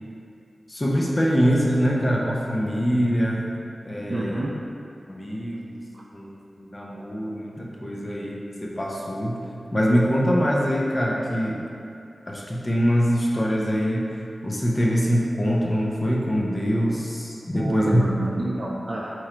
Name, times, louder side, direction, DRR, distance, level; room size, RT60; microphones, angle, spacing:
voice 1, 0.7-4.4 5.1-5.8 6.1-9.4 9.7-11.7 12.3-14.1 14.4-18.0, equal, 30° left, -3 dB, 0.6 m, -24 dB
voice 2, 4.1-4.5 5.9-6.0 17.5-19.1, right 2 dB, 50° right, -5 dB, 0.4 m, -28 dB
3.7 x 3.0 x 4.3 m, 2.5 s
cardioid pair, 50°, 0 cm